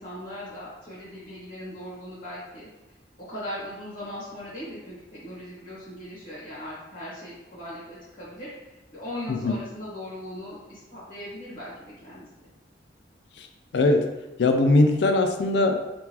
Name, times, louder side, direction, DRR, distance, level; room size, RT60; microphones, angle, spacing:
voice 1, 0.0-2.7 3.3-11.7 12.0-12.5, left 1 dB, 50° left, -10 dB, 1.0 m, -39 dB
voice 2, 13.7-14.1 14.4-15.8, left 2 dB, 65° left, 6 dB, 0.4 m, -20 dB
3.7 x 2.4 x 2.8 m, 0.99 s
head